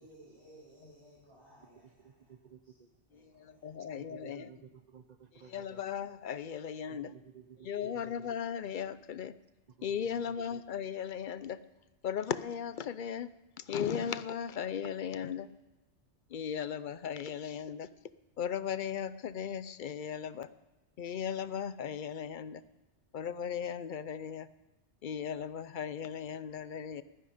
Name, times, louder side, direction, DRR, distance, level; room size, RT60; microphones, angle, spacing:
voice 1, 0.0-2.3 2.6-2.7 3.1-4.0, right 1 dB, 25° right, -9 dB, 6.2 m, -59 dB
voice 2, 1.8-2.9 4.0-5.8 6.9-8.3 9.7-10.6, right 7 dB, 40° right, 10 dB, 0.8 m, -54 dB
voice 3, 3.4-4.5 5.4-7.1 7.6-9.3 9.8-11.6 12.0-15.5 16.3-17.9 18.4-20.5 21.0-22.6 23.1-24.5 25.0-27.0, left 8 dB, 55° left, 15 dB, 0.6 m, -37 dB
15.5 x 12.0 x 5.1 m, 1.1 s
omnidirectional pair, 1.2 m